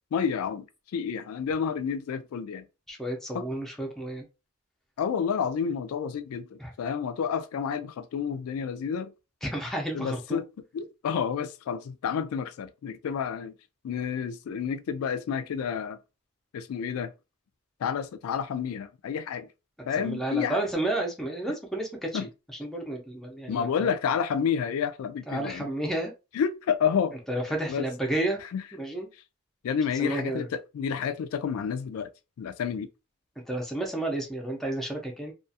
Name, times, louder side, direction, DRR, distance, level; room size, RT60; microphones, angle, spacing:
voice 1, 0.1-0.7 0.9-2.7 3.3-3.5 5.0-9.1 9.9-10.5 10.7-13.5 13.8-16.0 16.5-17.1 17.8-19.5 19.8-20.6 22.1-22.3 23.5-25.7 26.3-27.2 27.7-27.9 28.4-28.6 29.6-32.1 32.4-32.9, left 7 dB, 85° left, 0.3 m, -30 dB
voice 2, 2.9-4.2 6.6-6.7 9.4-10.4 20.0-22.3 22.6-23.9 25.3-26.1 27.3-28.4 28.7-29.1 30.0-30.5 33.5-35.3, right 1 dB, ahead, 0.5 m, -31 dB
2.3 x 2.3 x 2.7 m
head